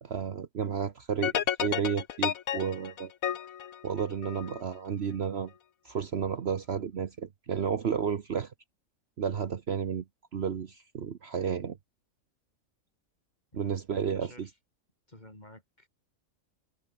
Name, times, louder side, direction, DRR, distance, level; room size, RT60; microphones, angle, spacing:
voice 1, 0.0-3.1 3.8-5.5 5.8-8.5 9.2-10.0 10.3-11.8 13.5-14.5, right 7 dB, 55° right, 1.2 m, -32 dB
sound 1, 1.2-4.6, left 10 dB, 90° left, 1.4 m, -32 dB
voice 2, 14.0-14.5 15.1-15.9, left 1 dB, 30° left, 6.3 m, -52 dB
omnidirectional pair, 1.4 m